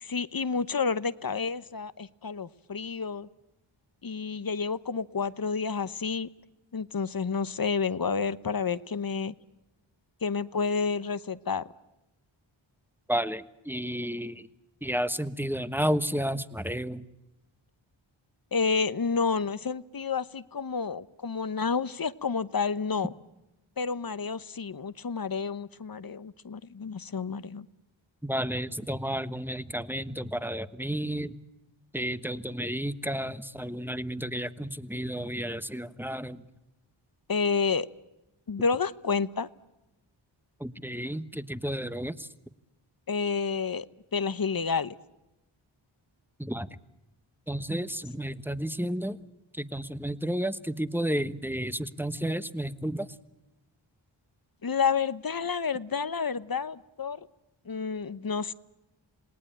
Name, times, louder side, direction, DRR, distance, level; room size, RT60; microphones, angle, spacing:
voice 1, 0.0-3.3 4.0-6.3 6.7-9.3 10.2-11.7 18.5-23.1 23.8-27.6 37.3-37.9 38.5-39.5 43.1-43.9 44.1-44.9 54.6-57.3 57.7-58.5, left 5 dB, 45° left, 16 dB, 1.0 m, -30 dB
voice 2, 13.1-14.5 14.8-17.0 28.2-31.4 31.9-36.4 40.6-42.3 46.4-46.7 47.5-49.2 49.5-53.1, equal, 5° right, 13 dB, 1.2 m, -32 dB
28.0 x 19.0 x 8.9 m, 0.98 s
cardioid pair, 45°, 49 cm